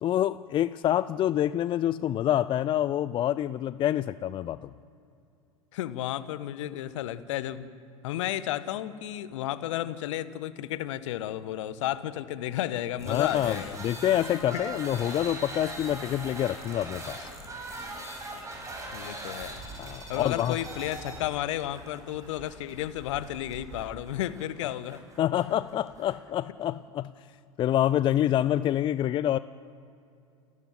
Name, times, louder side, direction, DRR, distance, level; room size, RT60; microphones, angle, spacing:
voice 1, 0.0-4.7 13.1-17.3 19.8-20.6 25.2-27.1 27.6-29.4, left 12 dB, 30° left, 16 dB, 0.5 m, -27 dB
voice 2, 5.7-7.7 8.0-13.8 18.9-19.6 20.1-25.0, left 13 dB, 60° left, 15 dB, 1.2 m, -33 dB
sound 1, 13.0-26.2, right 2 dB, 20° right, 5.9 m, -41 dB
29.5 x 13.5 x 7.8 m, 2.6 s
figure-of-eight pair, 85°, 18 cm